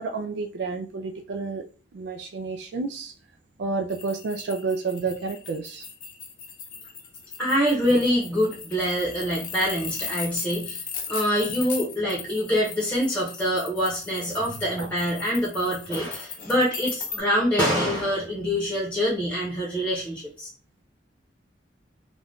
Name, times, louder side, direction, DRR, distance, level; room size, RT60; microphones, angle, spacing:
voice 1, 0.0-1.6 1.9-3.1 3.6-5.9 14.8-14.9, right 4 dB, 70° right, 0.3 m, -30 dB
sound 1, 3.9-17.2, left 6 dB, 50° left, 0.6 m, -38 dB
voice 2, 7.4-10.8 11.1-20.5, equal, 10° left, 0.8 m, -25 dB
2.5 x 2.2 x 3.4 m
head